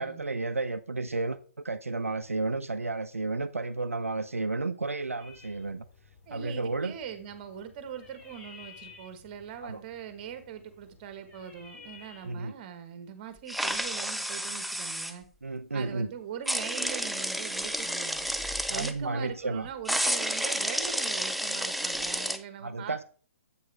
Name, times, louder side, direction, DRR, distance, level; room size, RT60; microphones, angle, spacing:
voice 1, 0.0-1.4 1.6-5.9 6.3-7.0 9.6-9.8 12.2-12.6 15.4-16.1 18.7-19.7 22.6-23.0, right 3 dB, 85° right, 0.5 m, -32 dB
sound 1, 5.2-12.4, left 5 dB, 20° left, 2.4 m, -54 dB
voice 2, 6.3-15.3 15.7-18.3 18.7-23.0, right 8 dB, 40° right, 1.5 m, -42 dB
sound 2, 13.5-15.1 16.5-18.9 19.9-22.4, equal, ahead, 0.4 m, -31 dB
8.2 x 6.3 x 3.4 m
figure-of-eight pair, 130°, 7 cm